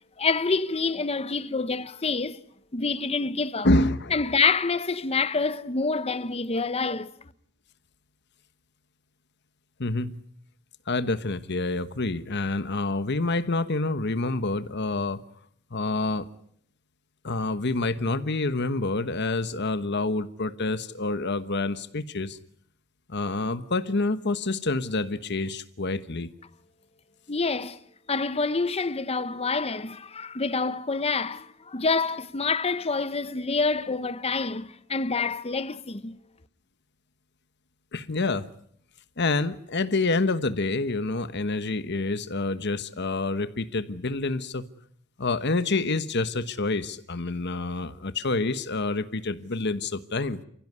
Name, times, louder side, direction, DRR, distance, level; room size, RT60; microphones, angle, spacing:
voice 1, 0.2-2.4 2.7-3.7 4.1-7.1 27.3-27.8 28.1-36.2, left 4 dB, 30° left, 0.9 m, -27 dB
voice 2, 3.6-4.2 9.8-10.2 10.9-15.2 15.7-16.3 17.2-22.4 23.1-26.3 37.9-38.5 39.2-44.7 45.2-50.4, left 2 dB, 55° left, 1.2 m, -27 dB
29.5 x 16.0 x 9.6 m
head